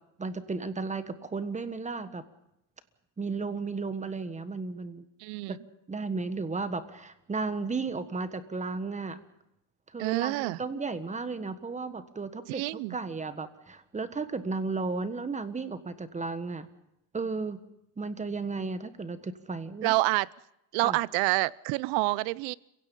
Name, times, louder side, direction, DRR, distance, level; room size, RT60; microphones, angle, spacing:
voice 1, 0.2-2.2 3.2-5.0 5.5-5.6 5.9-9.2 9.9-16.7 17.1-17.6 18.0-19.9 20.8-21.0, right 4 dB, 15° right, 12 dB, 1.5 m, -34 dB
voice 2, 5.2-5.6 10.0-10.6 12.5-13.0 19.8-20.3 20.7-22.5, right 22 dB, 70° right, 22 dB, 0.7 m, -27 dB
30.0 x 17.0 x 5.4 m, 0.83 s
cardioid pair, 130°, 48 cm